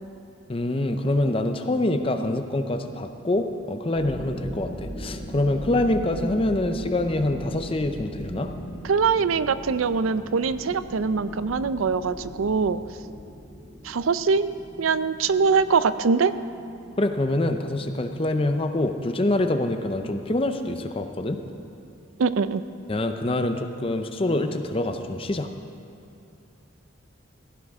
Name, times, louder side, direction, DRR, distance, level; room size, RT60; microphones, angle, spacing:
voice 1, 0.5-8.5 17.0-21.4 22.9-25.5, left 1 dB, 25° left, 7 dB, 0.6 m, -25 dB
sound 1, 3.9-20.5, equal, 5° right, 2.1 m, -40 dB
voice 2, 8.8-12.8 13.8-14.5 14.8-16.3 22.2-22.6, right 5 dB, 85° right, 14 dB, 0.5 m, -23 dB
16.0 x 15.0 x 3.6 m, 2.6 s
head